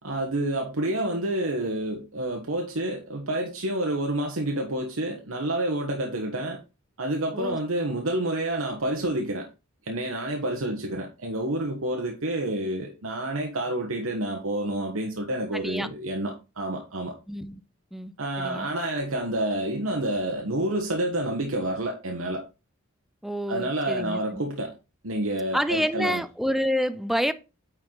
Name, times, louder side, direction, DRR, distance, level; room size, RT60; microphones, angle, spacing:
voice 1, 0.0-6.6 7.0-9.5 9.8-17.1 18.2-22.4 23.5-24.7 25.0-26.2, right 1 dB, 85° right, 1.2 m, -29 dB
voice 2, 15.5-15.9 17.3-17.6 17.9-18.7 23.2-24.4 25.5-27.3, equal, ahead, 0.4 m, -28 dB
9.3 x 4.6 x 3.9 m
head